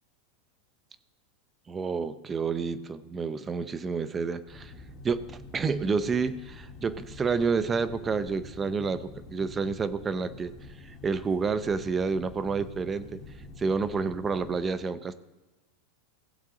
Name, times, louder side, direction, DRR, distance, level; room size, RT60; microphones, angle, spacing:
voice 1, 1.7-4.7 5.0-10.5 10.8-13.2 13.6-15.1, right 5 dB, 20° right, 14 dB, 0.6 m, -29 dB
sound 1, 4.5-14.6, left 3 dB, 25° left, 2.7 m, -47 dB
16.5 x 7.7 x 3.8 m, 1.1 s
supercardioid pair, 140°, 0 cm